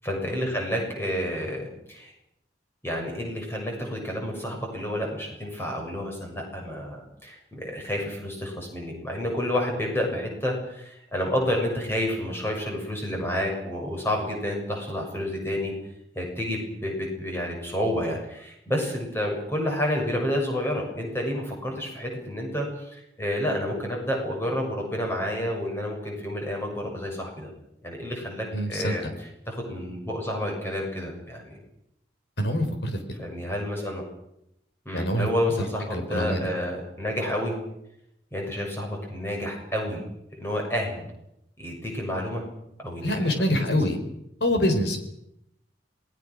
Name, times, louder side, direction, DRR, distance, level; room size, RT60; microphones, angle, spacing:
voice 1, 0.0-2.1 2.8-15.7 16.1-27.5 27.8-31.6 33.2-34.0 34.8-37.6 38.3-40.0 40.3-41.1 41.6-42.4 42.8-43.8, left 1 dB, 15° left, 0 dB, 6.9 m, -30 dB
voice 2, 28.5-29.1 32.4-33.0 34.9-35.3 35.6-36.4 43.0-44.0 44.4-45.0, equal, 65° left, 6 dB, 4.3 m, -25 dB
27.5 x 20.0 x 6.4 m, 0.80 s
head